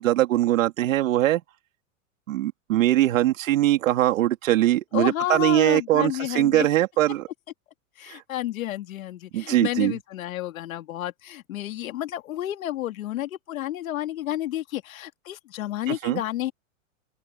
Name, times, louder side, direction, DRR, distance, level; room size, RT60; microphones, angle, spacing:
voice 1, 0.0-1.4 2.3-7.3 8.1-8.2 9.3-10.0 15.9-16.2, right 14 dB, 75° right, 3.0 m, -22 dB
voice 2, 4.9-6.7 8.0-16.5, left 13 dB, 80° left, 2.4 m, -31 dB
open air
supercardioid pair, 170°, 40 cm